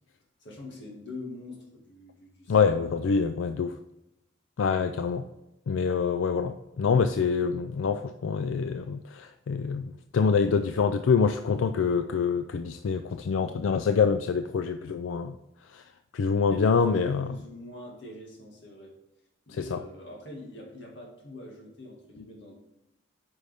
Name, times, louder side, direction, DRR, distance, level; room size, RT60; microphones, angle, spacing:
voice 1, 0.4-3.3 4.9-5.2 16.5-19.0 19.5-22.5, left 1 dB, 65° left, 0 dB, 2.0 m, -44 dB
voice 2, 2.5-3.8 4.6-5.3 5.7-15.4 15.7-15.8 16.1-17.3 19.5-19.8, left 5 dB, 85° left, 8 dB, 0.4 m, -26 dB
9.2 x 5.2 x 3.5 m, 0.94 s
head